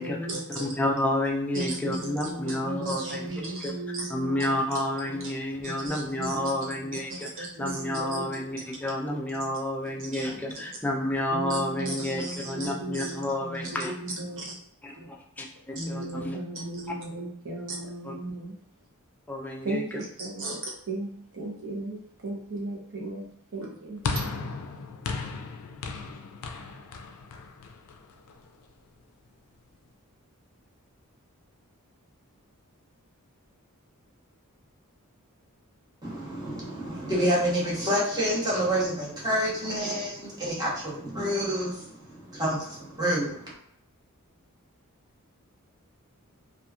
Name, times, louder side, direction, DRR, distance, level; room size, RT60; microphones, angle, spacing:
voice 1, 0.0-0.8 1.5-4.8 5.0-5.3 5.6-8.6 9.3-9.5 10.0-10.6 11.3-14.5 15.0-15.1 15.7-18.6 19.6-22.0 22.2-23.3 23.5-24.0, right 2 dB, 60° right, -2 dB, 0.8 m, -36 dB
voice 2, 0.6-3.3 3.6-3.7 4.1-13.9 14.8-16.4 18.0-18.1 19.3-19.8, left 1 dB, 5° left, -1 dB, 0.3 m, -30 dB
sound 1, 24.0-28.5, left 4 dB, 90° left, 0.4 m, -35 dB
voice 3, 36.0-43.5, equal, 20° right, -6 dB, 0.9 m, -28 dB
2.9 x 2.4 x 2.3 m, 0.72 s
head